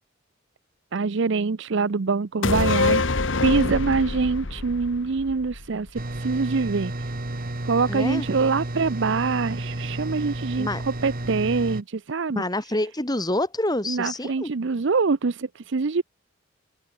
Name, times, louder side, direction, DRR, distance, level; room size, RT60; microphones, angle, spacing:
voice 1, 0.9-3.0 3.4-6.9 7.6-12.4 13.9-16.0, right 4 dB, 65° right, 0.6 m, -24 dB
sound 1, 2.4-6.0 6.3-6.4, left 3 dB, 70° left, 1.3 m, -25 dB
sound 2, 5.9-11.8, right 1 dB, 45° right, 1.8 m, -32 dB
voice 2, 7.9-8.4 10.6-10.8 12.3-14.5, left 1 dB, 20° left, 4.9 m, -27 dB
head